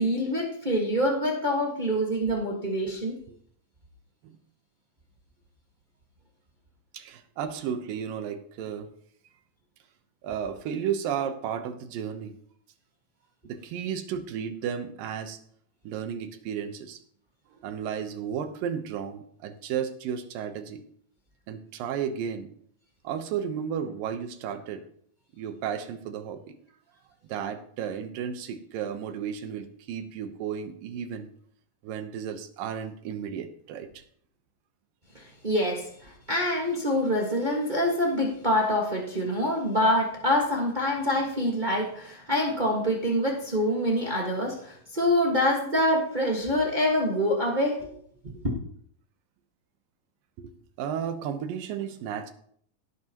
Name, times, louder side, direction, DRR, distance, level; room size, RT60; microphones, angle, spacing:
voice 1, 0.0-3.1 35.1-47.9, equal, 40° right, -2 dB, 0.6 m, -26 dB
voice 2, 6.9-8.9 10.2-12.3 13.4-15.4 15.8-17.0 17.6-20.8 21.5-22.5 23.0-24.8 25.4-26.5 27.3-31.3 31.8-34.0 39.5-39.7 50.4-50.5 50.8-52.3, right 8 dB, 85° right, 8 dB, 2.7 m, -33 dB
17.0 x 9.9 x 3.0 m, 0.63 s
omnidirectional pair, 3.9 m